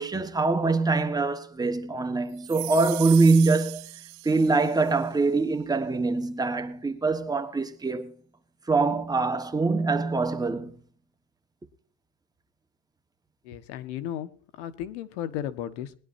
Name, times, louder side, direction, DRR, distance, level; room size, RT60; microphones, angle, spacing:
voice 1, 0.0-3.9 4.2-8.1 8.7-10.8, right 3 dB, 10° right, 1.4 m, -24 dB
sound 1, 2.4-4.9, right 24 dB, 80° right, 1.0 m, -38 dB
voice 2, 13.4-16.0, left 11 dB, 80° left, 1.4 m, -35 dB
20.5 x 11.0 x 2.7 m
cardioid pair, 135°, 34 cm